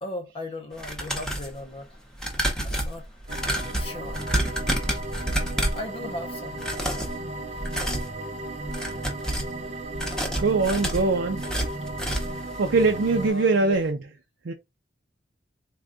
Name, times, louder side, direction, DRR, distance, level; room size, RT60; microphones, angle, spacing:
voice 1, 0.0-1.9 2.6-3.1 3.8-4.3 5.7-6.6 9.2-9.3 13.2-13.8, left 2 dB, 35° left, 0.5 m, -37 dB
sound 1, 0.7-1.5 2.1-5.9 6.5-7.2 7.6-8.1 8.6-9.5 9.9-12.4 12.8-12.9 13.2-13.3, equal, 5° left, 0.8 m, -29 dB
sound 2, 3.3-13.3, right 2 dB, 40° right, 0.6 m, -35 dB
voice 2, 10.4-11.4 12.6-14.0 14.4-14.5, right 3 dB, 85° right, 0.5 m, -22 dB
3.8 x 2.2 x 3.5 m
head